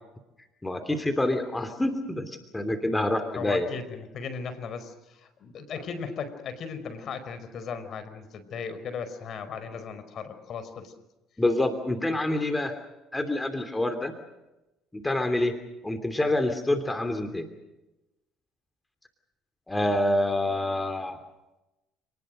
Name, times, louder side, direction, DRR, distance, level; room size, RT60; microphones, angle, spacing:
voice 1, 0.6-3.7 11.4-12.7 13.1-14.1 14.9-15.5 15.8-17.5 19.7-21.2, left 1 dB, 10° left, 8 dB, 2.9 m, -27 dB
voice 2, 3.4-10.9, left 6 dB, 55° left, 11 dB, 4.8 m, -37 dB
29.0 x 20.0 x 6.5 m, 0.98 s
supercardioid pair, 85°, 0 cm